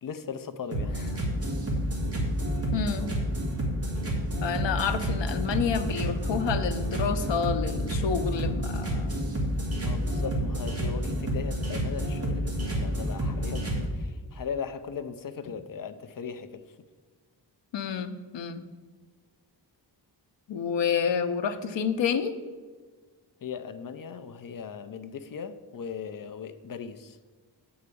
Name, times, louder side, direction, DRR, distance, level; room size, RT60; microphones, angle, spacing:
voice 1, 0.0-1.2 9.8-16.6 23.4-27.2, left 6 dB, 50° left, 10 dB, 0.5 m, -38 dB
sound 1, 0.7-13.9, equal, 35° right, 2.0 m, -29 dB
voice 2, 2.7-3.1 4.4-9.1 17.7-18.6 20.5-22.4, left 7 dB, 85° left, 9 dB, 0.8 m, -29 dB
8.6 x 4.8 x 6.8 m, 1.5 s
wide cardioid pair, 155°, 43 cm